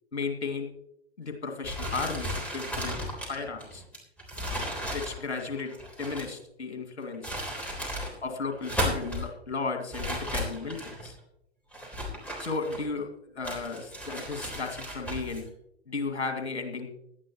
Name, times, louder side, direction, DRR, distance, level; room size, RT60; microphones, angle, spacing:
voice 1, 0.1-0.7 1.2-3.0 3.3-3.8 4.9-7.3 8.2-11.2 12.4-15.5 15.9-16.9, left 4 dB, 70° left, 5 dB, 2.3 m, -34 dB
sound 1, 1.6-6.4 7.0-8.1 8.5-9.3 9.9-11.1 11.7-13.0 13.4-15.4, equal, 5° left, 3.5 m, -35 dB
17.5 x 11.5 x 3.0 m, 0.79 s
figure-of-eight pair, 105°, 34 cm